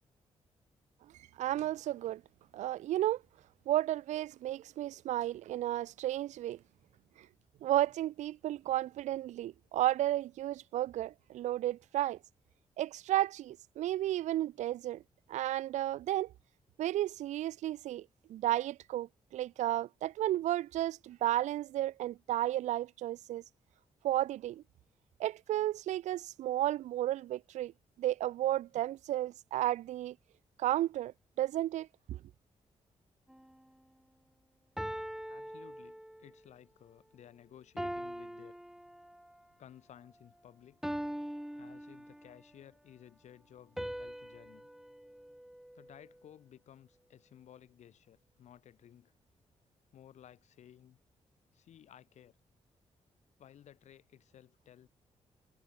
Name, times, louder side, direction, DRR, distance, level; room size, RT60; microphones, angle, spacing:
voice 1, 1.4-2.2 2.5-3.2 3.7-6.6 7.2-7.3 7.6-12.2 12.8-15.0 15.3-16.3 16.8-23.4 24.0-24.6 25.2-27.7 28.0-30.2 30.6-32.2, right 13 dB, 85° right, 0.4 m, -33 dB
sound 1, 33.3-33.6 34.8-36.4 37.8-39.4 40.8-42.5 43.8-46.2, equal, 5° right, 2.8 m, -42 dB
voice 2, 35.3-38.6 39.6-40.9 41.5-44.7 45.7-49.1 49.9-51.0 51.5-52.4 53.4-54.9, left 10 dB, 80° left, 6.1 m, -57 dB
cardioid pair, 100°, 12 cm